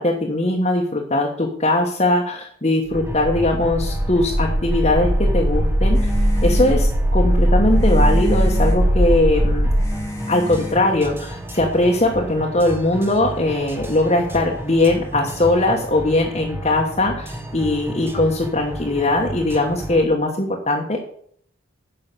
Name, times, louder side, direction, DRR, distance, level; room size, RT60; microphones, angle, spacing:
voice 1, 0.0-6.0 6.4-9.7 10.3-21.0, left 2 dB, 30° left, -1 dB, 1.2 m, -20 dB
sound 1, 2.9-20.0, right 1 dB, 10° right, 1.0 m, -33 dB
sound 2, 2.9-9.9, equal, 55° right, 1.3 m, -19 dB
sound 3, 5.9-11.4, left 1 dB, 15° left, 1.5 m, -32 dB
10.0 x 5.7 x 6.8 m, 0.63 s
head